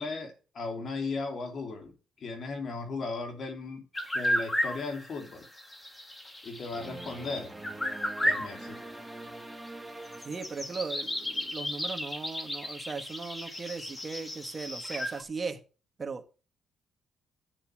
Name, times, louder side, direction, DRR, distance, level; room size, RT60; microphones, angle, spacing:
voice 1, 0.0-3.9 4.1-5.5 6.4-7.5 8.2-8.8, left 3 dB, 55° left, 3.0 m, -36 dB
sound 1, 3.9-15.2, equal, 20° left, 2.3 m, -34 dB
sound 2, 6.7-11.2, right 2 dB, 10° right, 1.7 m, -45 dB
voice 2, 10.2-15.6 16.0-16.4, right 4 dB, 35° right, 1.6 m, -38 dB
8.3 x 7.1 x 6.2 m
cardioid pair, 90°, 0 cm